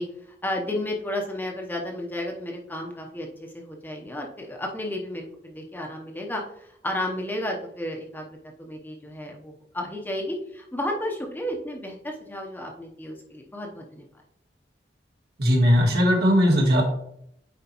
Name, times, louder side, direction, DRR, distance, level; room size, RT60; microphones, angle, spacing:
voice 1, 0.0-14.0, left 1 dB, 10° left, 1 dB, 0.8 m, -33 dB
voice 2, 15.4-16.8, equal, 65° right, -1 dB, 1.9 m, -18 dB
9.2 x 4.5 x 3.0 m, 0.73 s
head